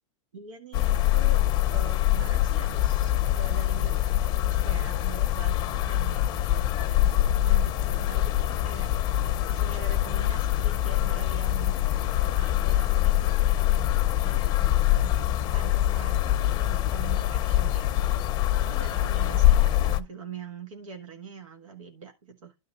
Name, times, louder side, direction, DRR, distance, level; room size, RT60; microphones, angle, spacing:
voice 1, 0.3-1.4 1.7-9.2 9.5-12.1 12.4-17.9 18.6-22.6, right 5 dB, 90° right, 1.7 m, -43 dB
sound 1, 0.7-20.0, left 14 dB, 25° left, 0.6 m, -24 dB
11.5 x 3.9 x 5.5 m
supercardioid pair, 150°, 16 cm